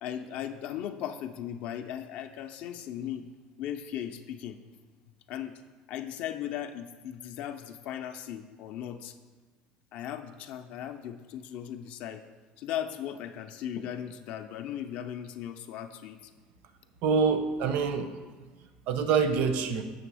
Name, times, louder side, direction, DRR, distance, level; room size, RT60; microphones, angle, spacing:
voice 1, 0.0-3.2 3.6-4.6 5.3-5.6 5.9-9.2 9.9-12.2 12.6-16.3, left 10 dB, 50° left, 8 dB, 0.4 m, -37 dB
voice 2, 17.0-18.1 18.9-19.8, right 6 dB, 55° right, 9 dB, 0.6 m, -25 dB
7.6 x 3.3 x 6.1 m, 1.3 s
cardioid pair, 160°, 3 cm